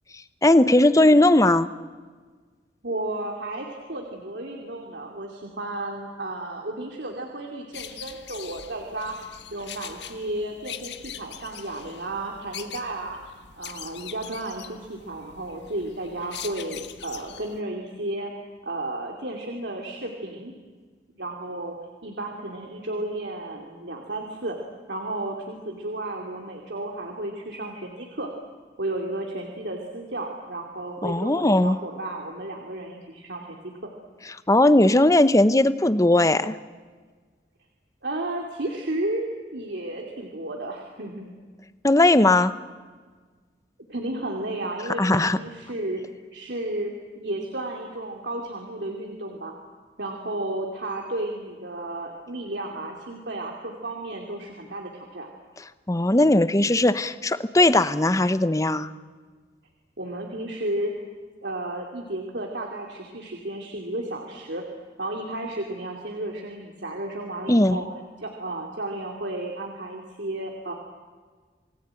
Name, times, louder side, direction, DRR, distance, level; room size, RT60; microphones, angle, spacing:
voice 1, 0.4-1.7 31.0-31.8 34.5-36.6 41.8-42.5 45.0-45.4 55.9-58.9 67.5-67.8, left 1 dB, 20° left, 13 dB, 0.8 m, -18 dB
voice 2, 2.8-9.2 9.5-20.5 21.1-24.6 24.9-28.3 28.8-33.9 38.0-41.3 43.9-46.0 46.3-49.5 50.0-55.3 60.0-60.9 61.4-64.7 65.0-67.9 68.2-70.7, right 1 dB, 80° right, 1 dB, 2.8 m, -33 dB
sound 1, 7.7-17.6, left 9 dB, 80° left, 1.6 m, -42 dB
28.5 x 20.0 x 9.0 m, 1.5 s
head